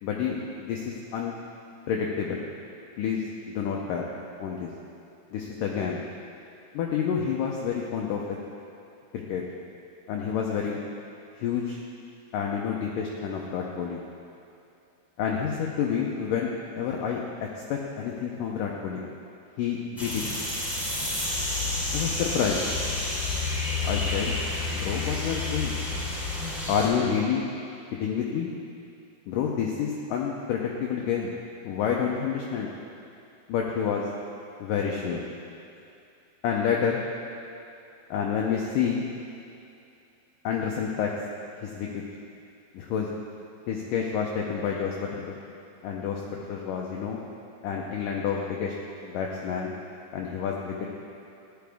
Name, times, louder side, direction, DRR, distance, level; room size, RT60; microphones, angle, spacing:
voice 1, 0.0-1.3 1.9-2.4 3.0-3.2 3.6-4.0 4.4-4.7 5.3-6.0 6.7-8.2 9.1-9.4 10.1-10.8 11.4-11.8 12.3-14.0 15.2-19.0 19.6-20.2 21.9-22.6 23.8-24.3 24.7-25.8 26.7-27.4 27.9-28.5 29.3-31.3 31.6-32.7 33.5-34.1 34.6-35.2 36.4-37.0 38.1-39.0 40.4-41.1 41.6-42.0 42.7-43.1 43.7-45.4 45.8-47.2 47.6-48.7 49.0-49.7 50.1-50.7, left 7 dB, 80° left, -1 dB, 2.0 m, -29 dB
sound 1, 20.0-26.9, left 3 dB, ahead, 2.1 m, -29 dB
14.5 x 10.5 x 3.5 m, 2.6 s
omnidirectional pair, 4.6 m